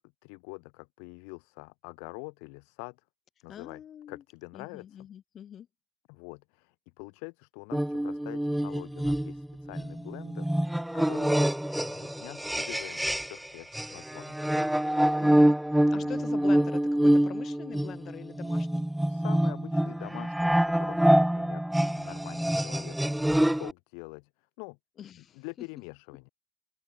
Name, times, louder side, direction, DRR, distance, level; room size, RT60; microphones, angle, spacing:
voice 1, 0.2-3.0 3.4-4.9 6.1-14.4 15.7-16.2 19.1-24.3 24.6-24.8 25.3-26.3, left 40 dB or more, 60° left, 1.7 m, -45 dB
voice 2, 3.5-4.2 4.5-5.7 15.2-15.6 15.9-18.8 25.0-25.7, left 9 dB, 40° left, 3.0 m, -44 dB
sound 1, 7.7-13.5 13.7-23.7, right 1 dB, 5° right, 0.9 m, -26 dB
open air
figure-of-eight pair, 70°, 0 cm